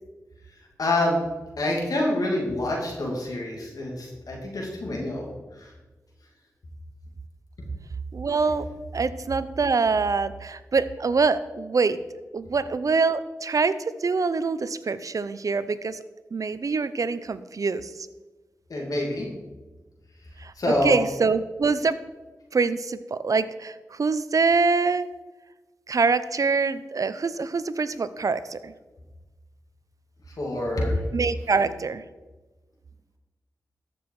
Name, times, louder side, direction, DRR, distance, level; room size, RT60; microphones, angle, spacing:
voice 1, 0.8-1.2 1.6-5.7 18.7-19.3 20.6-21.0 30.4-31.0, left 1 dB, 70° left, -2 dB, 2.7 m, -26 dB
voice 2, 8.1-8.7 8.9-12.0 12.3-13.7 14.0-16.0 16.3-17.9 20.4-20.5 20.8-22.0 22.5-25.1 25.9-28.7 31.1-32.0, right 4 dB, 60° right, 14 dB, 0.6 m, -24 dB
13.5 x 6.2 x 4.8 m, 1.2 s
cardioid pair, 45°, 6 cm